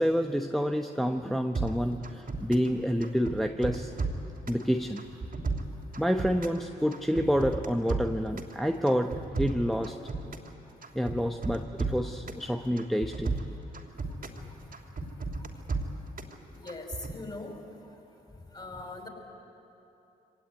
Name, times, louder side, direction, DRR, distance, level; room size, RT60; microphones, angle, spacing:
voice 1, 0.0-3.9 4.5-5.0 6.0-10.0 10.9-13.4, equal, ahead, 5 dB, 1.1 m, -28 dB
sound 1, 1.5-2.7 3.0-4.6 5.0-6.6 6.9-8.5 8.9-10.5 10.8-12.4 12.8-14.4 14.7-16.3 16.7-17.1, right 3 dB, 45° right, 3.0 m, -34 dB
voice 2, 16.5-17.5 18.5-19.1, left 2 dB, 20° left, 2 dB, 5.7 m, -40 dB
24.0 x 17.5 x 9.6 m, 2.9 s
hypercardioid pair, 45°, 21 cm